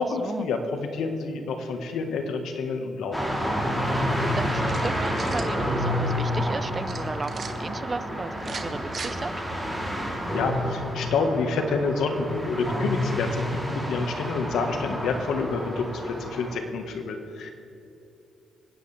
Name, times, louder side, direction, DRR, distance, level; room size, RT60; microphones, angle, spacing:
voice 1, 0.0-3.2 10.3-17.5, left 4 dB, 75° left, 5 dB, 1.5 m, -28 dB
sound 1, 3.1-16.5, equal, 10° left, 3.3 m, -29 dB
voice 2, 4.2-9.3, right 3 dB, 30° right, 13 dB, 0.6 m, -34 dB
sound 2, 4.7-5.5 6.9-7.5 8.4-9.1, right 5 dB, 45° right, 1.2 m, -38 dB
28.0 x 9.8 x 3.4 m, 2.8 s
cardioid pair, 90°, 0 cm